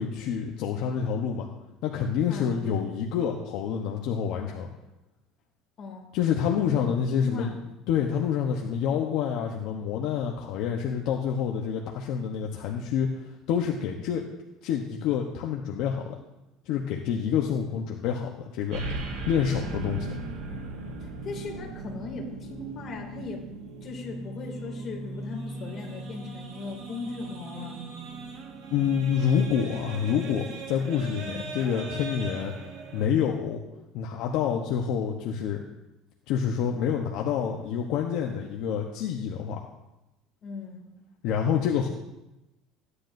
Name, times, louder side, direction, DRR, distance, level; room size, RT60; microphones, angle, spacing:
voice 1, 0.0-1.5 1.8-4.7 6.1-7.5 7.9-14.2 14.6-16.2 16.6-18.8 19.3-20.2 28.7-32.5 32.9-33.6 33.9-35.6 36.3-39.6 41.2-41.9, left 8 dB, 60° left, 0 dB, 1.0 m, -27 dB
voice 2, 2.3-2.6 5.8-6.1 6.7-7.6 21.0-23.5 23.8-27.9 31.2-31.6 40.4-40.9, left 3 dB, 35° left, 0 dB, 2.4 m, -38 dB
sound 1, 18.7-33.1, right 3 dB, 60° right, 1.6 m, -38 dB
15.5 x 9.8 x 2.6 m, 0.95 s
cardioid pair, 155°, 0 cm